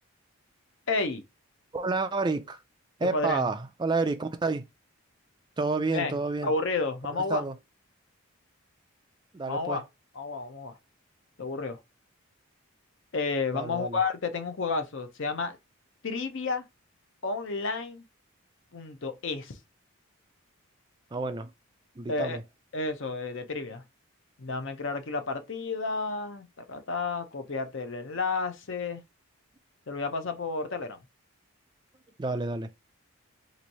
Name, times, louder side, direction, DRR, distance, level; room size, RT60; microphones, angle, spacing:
voice 1, 0.9-1.2 3.1-3.5 5.9-6.1 6.4-7.5 9.5-9.8 10.1-10.8 11.4-11.8 13.1-15.6 16.0-16.6 17.2-18.0 18.7-19.6 22.1-22.4 22.7-23.8 24.4-29.0 29.9-31.0, left 3 dB, 55° left, 0.6 m, -31 dB
voice 2, 1.7-2.6 3.0-4.6 5.6-6.5 7.1-7.5 9.3-9.8 13.5-14.0 21.1-21.5 22.0-22.4 32.2-32.7, right 3 dB, 20° right, 0.3 m, -29 dB
3.1 x 2.6 x 4.0 m
head